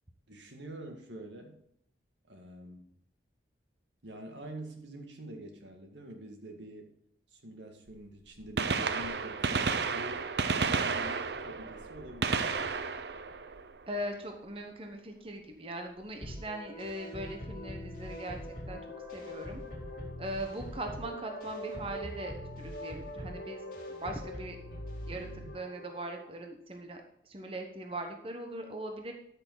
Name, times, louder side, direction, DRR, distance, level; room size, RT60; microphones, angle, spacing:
voice 1, 0.3-1.6 2.3-2.9 4.0-6.9 7.3-10.3 10.6-12.5, right 1 dB, 85° right, 3 dB, 1.9 m, -46 dB
Gunshot gunfire, 7.9-8.0 8.4-14.3 16.2-16.4 17.4-17.5 19.1-19.2 20.6-20.7 20.8-20.9, right 5 dB, 65° right, 0.6 m, -32 dB
voice 2, 13.9-18.8 19.1-19.6 20.2-24.6 25.1-29.1, right 1 dB, 30° right, 4 dB, 1.0 m, -40 dB
sound 1, 16.2-26.3, left 1 dB, 50° left, 2.5 m, -42 dB
13.0 x 6.7 x 3.9 m, 0.72 s
head